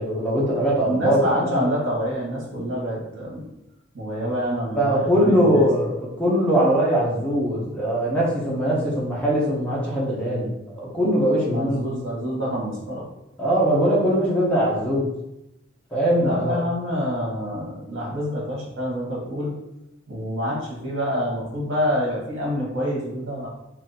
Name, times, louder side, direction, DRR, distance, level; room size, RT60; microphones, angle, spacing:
voice 1, 0.0-1.7 4.7-10.5 10.8-11.9 13.4-15.1 15.9-16.6, equal, 5° left, -6 dB, 1.0 m, -21 dB
voice 2, 0.8-3.5 3.9-5.7 11.5-13.0 16.2-19.5 20.1-23.5, equal, 85° right, -3 dB, 1.4 m, -27 dB
3.0 x 2.7 x 4.1 m, 0.88 s
head